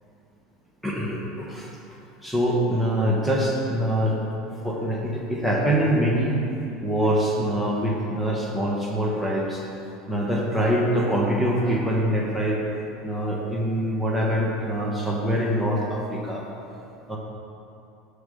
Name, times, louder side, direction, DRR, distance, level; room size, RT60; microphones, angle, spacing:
voice 1, 0.8-1.7 2.2-4.2 4.6-6.4 6.8-9.6 10.1-12.6 13.0-16.5 17.1-17.2, equal, 5° right, -3 dB, 1.3 m, -24 dB
7.3 x 4.9 x 6.5 m, 2.8 s
supercardioid pair, 105°, 0 cm